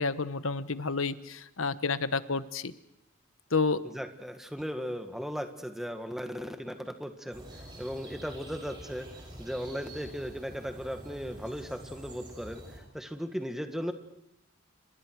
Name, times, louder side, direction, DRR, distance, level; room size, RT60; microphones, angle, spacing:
voice 1, 0.0-2.7 3.5-3.8, left 4 dB, 80° left, 13 dB, 1.2 m, -30 dB
voice 2, 3.8-7.4 7.8-9.1 9.4-13.9, equal, ahead, 6 dB, 1.8 m, -37 dB
sound 1, 7.3-12.8, right 1 dB, 20° right, 7.2 m, -47 dB
29.0 x 27.0 x 4.8 m, 0.84 s
head